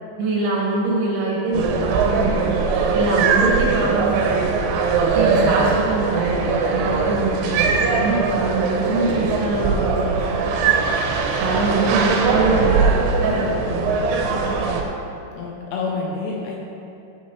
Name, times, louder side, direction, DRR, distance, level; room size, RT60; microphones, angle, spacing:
voice 1, 0.2-2.6 2.9-4.7 5.1-10.7 11.4-12.8 13.2-14.0, right 2 dB, 70° right, -5 dB, 4.0 m, -23 dB
sound 1, 1.5-14.8, right 4 dB, 85° right, 3.4 m, -21 dB
voice 2, 15.4-16.6, left 4 dB, 75° left, -2 dB, 2.7 m, -28 dB
12.5 x 8.6 x 3.2 m, 2.6 s
omnidirectional pair, 5.6 m